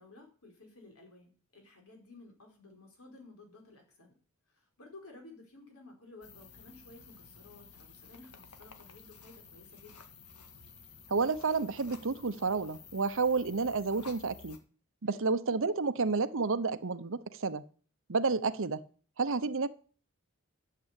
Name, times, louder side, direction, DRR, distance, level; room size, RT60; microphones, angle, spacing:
voice 1, 0.0-4.1 4.5-10.0 15.1-15.4, left 2 dB, 70° left, 4.7 m, -55 dB
sound 1, 6.2-14.6, left 5 dB, 90° left, 1.9 m, -53 dB
voice 2, 11.1-14.6 15.0-17.6 18.1-18.8 19.2-19.7, right 4 dB, 60° right, 0.8 m, -30 dB
11.5 x 7.7 x 8.3 m
head